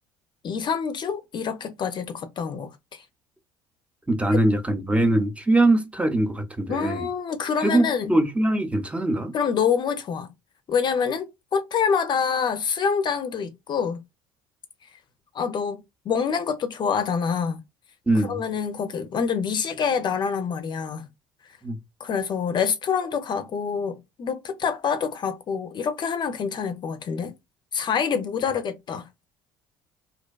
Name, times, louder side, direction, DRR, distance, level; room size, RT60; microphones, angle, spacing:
voice 1, 0.4-3.0 4.3-4.5 6.7-8.2 9.3-10.3 10.7-14.0 15.3-17.6 18.1-21.1 22.0-27.3 27.7-29.1, left 6 dB, 40° left, 0.5 m, -26 dB
voice 2, 4.1-7.1 7.6-9.3 18.1-18.4 21.6-21.8, right 1 dB, 10° right, 0.6 m, -22 dB
2.5 x 2.2 x 2.2 m
hypercardioid pair, 65°, 11 cm